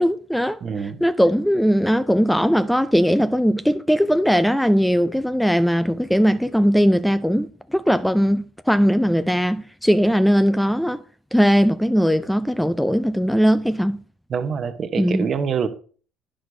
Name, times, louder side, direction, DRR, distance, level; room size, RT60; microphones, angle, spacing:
voice 1, 0.0-0.6 1.0-11.0 11.3-14.0 15.0-15.3, equal, ahead, 0.4 m, -19 dB
voice 2, 0.6-1.0 14.3-15.7, right 6 dB, 45° right, 0.9 m, -25 dB
10.0 x 6.3 x 2.7 m
hypercardioid pair, 65°, 0 cm